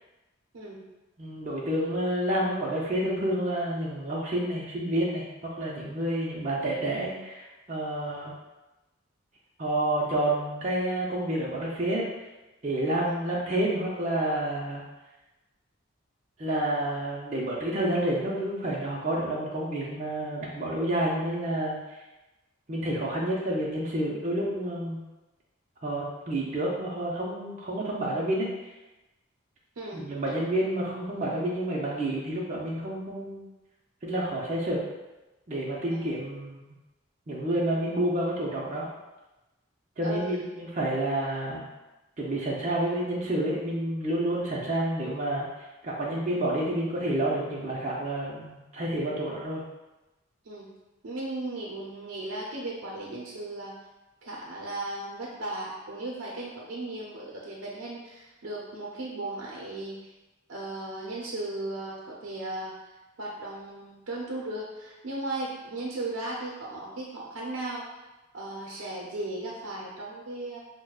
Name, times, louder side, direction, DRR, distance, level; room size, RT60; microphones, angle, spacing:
voice 1, 1.2-8.3 9.6-12.1 12.6-14.8 16.4-21.8 22.7-25.0 25.8-28.5 29.9-33.4 34.0-34.8 35.5-36.6 37.3-38.9 40.0-41.7 42.2-45.5 45.8-49.6, right 1 dB, 35° right, -5 dB, 0.5 m, -29 dB
voice 2, 29.8-30.1 35.9-36.1 40.0-40.5 50.4-50.7 51.0-53.7 54.2-60.0 60.5-62.7 63.2-68.0 68.3-70.6, right 2 dB, 85° right, -4 dB, 0.6 m, -36 dB
6.1 x 2.1 x 2.3 m, 1.0 s
head